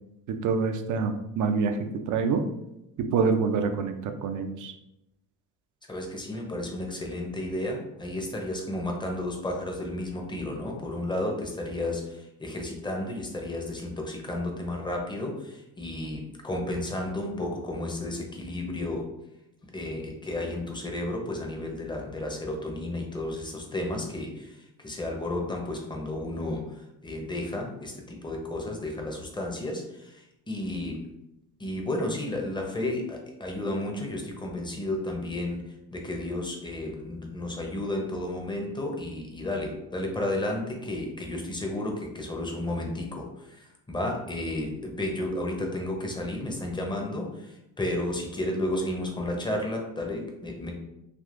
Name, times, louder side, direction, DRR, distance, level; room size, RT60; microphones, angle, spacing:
voice 1, 0.3-2.4 3.0-4.7, right 5 dB, 45° right, 7 dB, 0.5 m, -26 dB
voice 2, 5.9-19.0 19.7-26.6 27.0-31.0 31.6-35.6 35.9-50.7, left 1 dB, 10° left, 1 dB, 0.7 m, -32 dB
3.5 x 2.5 x 2.5 m, 0.87 s
supercardioid pair, 70°, 43 cm